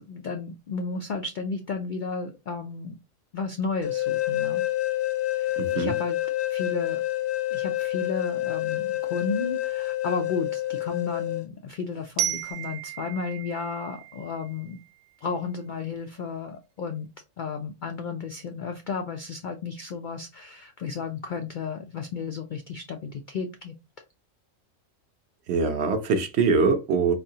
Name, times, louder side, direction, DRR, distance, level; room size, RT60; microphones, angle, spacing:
voice 1, 0.0-3.0 3.3-4.6 5.4-6.2 6.5-7.0 7.5-14.8 15.2-17.1 17.4-23.7, left 5 dB, 80° left, 0.4 m, -33 dB
sound 1, 3.8-11.4, left 15 dB, 65° left, 0.8 m, -28 dB
voice 2, 5.6-5.9 25.5-27.1, right 4 dB, 65° right, 0.7 m, -23 dB
Glockenspiel, 12.2-15.0, right 13 dB, 90° right, 1.0 m, -34 dB
4.1 x 2.7 x 2.7 m
omnidirectional pair, 1.4 m